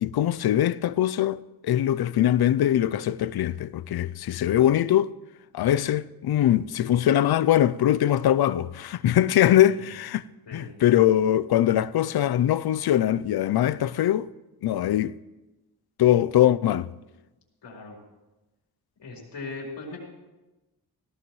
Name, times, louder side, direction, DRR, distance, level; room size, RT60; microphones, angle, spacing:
voice 1, 0.0-5.1 5.5-10.2 10.5-14.3 14.6-15.1 16.0-16.9, left 12 dB, 65° left, 0.5 m, -22 dB
voice 2, 17.6-18.0 19.0-20.0, left 3 dB, 90° left, 4.4 m, -39 dB
18.0 x 16.5 x 3.1 m
wide cardioid pair, 135°, 41 cm